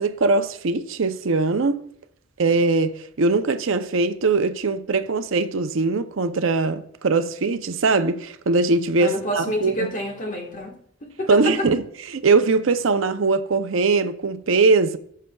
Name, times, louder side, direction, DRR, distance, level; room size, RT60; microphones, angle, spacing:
voice 1, 0.0-1.8 2.4-2.9 3.2-9.9 11.3-11.8 12.1-15.0, right 3 dB, 75° right, 0.6 m, -21 dB
voice 2, 9.0-11.7, equal, 40° left, 1.4 m, -28 dB
17.5 x 6.5 x 2.3 m
head